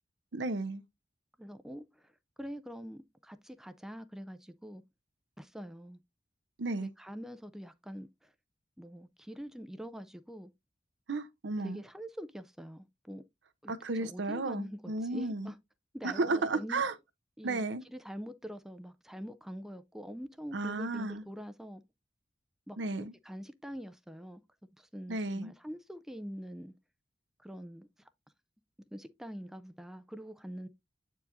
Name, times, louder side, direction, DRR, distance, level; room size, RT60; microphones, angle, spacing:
voice 1, 0.3-0.8 6.6-6.9 11.1-11.8 13.7-15.5 16.0-16.9 17.4-17.8 20.5-21.2 22.8-23.1 25.1-25.5, right 3 dB, 75° right, 0.7 m, -33 dB
voice 2, 1.4-2.1 2.4-4.8 5.4-6.0 6.8-8.3 8.8-10.5 11.6-13.2 13.6-15.6 15.9-16.8 17.4-17.6 17.9-21.8 22.7-22.8 23.2-24.4 24.8-26.7 27.4-28.1 28.9-30.7, equal, ahead, 0.3 m, -44 dB
8.4 x 4.6 x 2.5 m
head